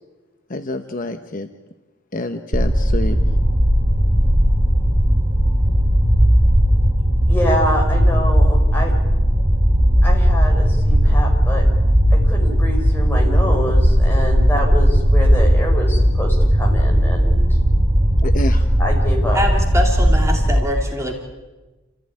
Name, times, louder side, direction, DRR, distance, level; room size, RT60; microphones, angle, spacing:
voice 1, 0.5-1.5 2.1-3.2 18.2-18.7, left 2 dB, 40° left, 7 dB, 1.0 m, -27 dB
sound 1, 2.5-20.5, equal, 35° right, 5.6 m, -16 dB
voice 2, 7.3-8.9 10.0-11.6 12.1-17.5 18.8-19.4, equal, 10° left, 0 dB, 5.3 m, -26 dB
voice 3, 19.3-21.1, equal, 15° right, 1 dB, 2.6 m, -23 dB
28.5 x 15.0 x 9.8 m, 1.1 s
head